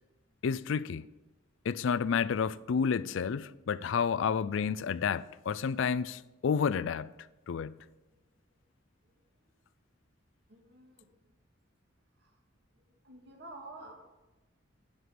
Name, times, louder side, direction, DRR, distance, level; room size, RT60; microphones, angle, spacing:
voice 1, 0.4-1.1 1.7-7.1 7.5-7.8, left 6 dB, 65° left, 0.4 m, -30 dB
voice 2, 10.5-11.1 12.2-12.4 12.7-13.9, right 2 dB, 60° right, 2.2 m, -50 dB
8.0 x 6.7 x 7.7 m
head